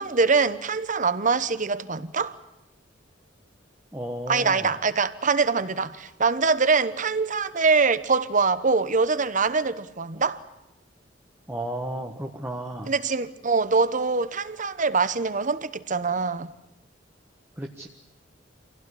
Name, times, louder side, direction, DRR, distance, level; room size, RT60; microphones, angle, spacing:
voice 1, 0.0-2.4 4.3-10.4 12.9-16.5, right 4 dB, 45° right, 1.0 m, -23 dB
voice 2, 3.9-4.7 11.5-12.9 17.6-17.9, right 1 dB, 10° right, 1.3 m, -33 dB
26.0 x 17.0 x 10.0 m
head